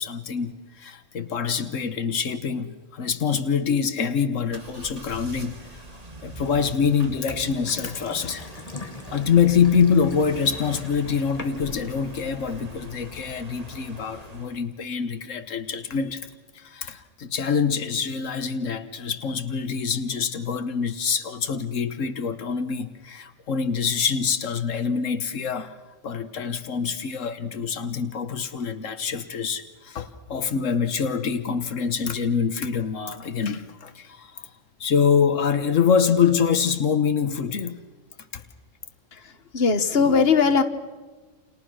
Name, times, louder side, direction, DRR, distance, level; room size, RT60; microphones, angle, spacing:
voice 1, 0.0-5.8 6.2-8.5 9.1-16.3 16.5-25.7 26.0-34.5 34.8-37.8 38.3-38.4, left 6 dB, 85° left, 9 dB, 1.5 m, -25 dB
sound 1, 4.5-14.7, right 1 dB, 30° right, 1.9 m, -42 dB
Water tap faucet / Sink (filling or washing) / Bathtub (filling or washing), 7.6-13.1, left 3 dB, 30° left, 1.5 m, -42 dB
voice 2, 39.1-40.6, left 5 dB, 55° left, 9 dB, 1.6 m, -20 dB
29.5 x 29.0 x 6.3 m, 1.3 s
omnidirectional pair, 1.3 m